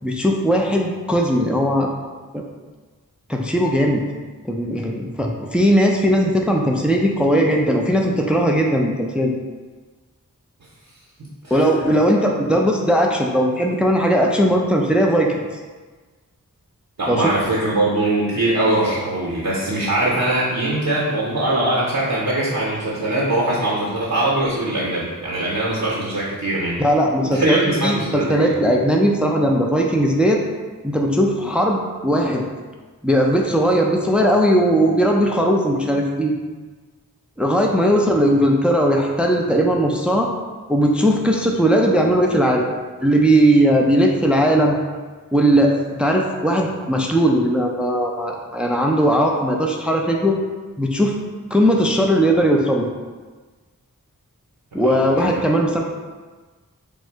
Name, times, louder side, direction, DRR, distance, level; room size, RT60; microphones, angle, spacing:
voice 1, 0.0-1.9 2.3-2.4 3.3-4.0 4.4-9.3 11.5-15.3 17.1-17.2 26.8-30.4 30.8-32.4 33.0-36.3 37.4-40.3 40.7-42.7 43.0-44.8 45.3-50.4 50.8-51.1 51.5-52.9 54.7-55.8, equal, 5° right, 1 dB, 0.4 m, -18 dB
voice 2, 17.0-26.8 27.2-28.5 54.8-55.4, right 1 dB, 65° right, -6 dB, 0.7 m, -22 dB
3.6 x 2.1 x 4.4 m, 1.4 s
wide cardioid pair, 40°, 35 cm